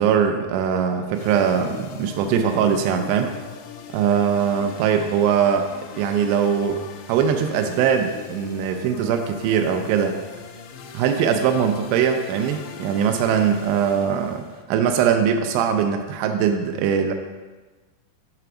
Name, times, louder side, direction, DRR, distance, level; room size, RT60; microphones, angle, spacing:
voice 1, 0.0-3.3 3.9-5.7 6.0-6.8 7.1-10.2 10.9-17.1, right 7 dB, 85° right, 5 dB, 2.4 m, -21 dB
sound 1, 1.1-14.6, left 6 dB, 85° left, 2.2 m, -40 dB
6.8 x 3.3 x 5.9 m, 1.3 s
omnidirectional pair, 5.3 m